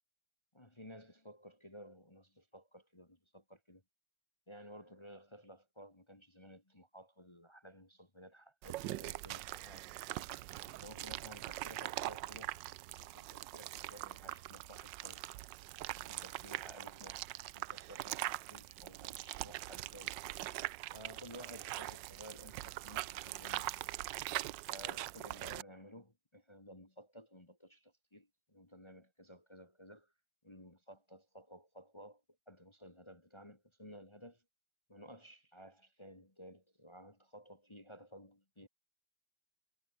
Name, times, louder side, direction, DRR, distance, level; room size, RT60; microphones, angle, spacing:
voice 1, 0.5-3.8 4.5-9.9 10.6-12.6 13.0-15.2 15.9-20.2 20.9-23.8 24.7-30.1 30.4-34.4 34.9-38.7, equal, 15° left, 1.6 m, -55 dB
sound 1, 8.6-25.6, right 16 dB, 75° right, 1.2 m, -42 dB
omnidirectional pair, 2.2 m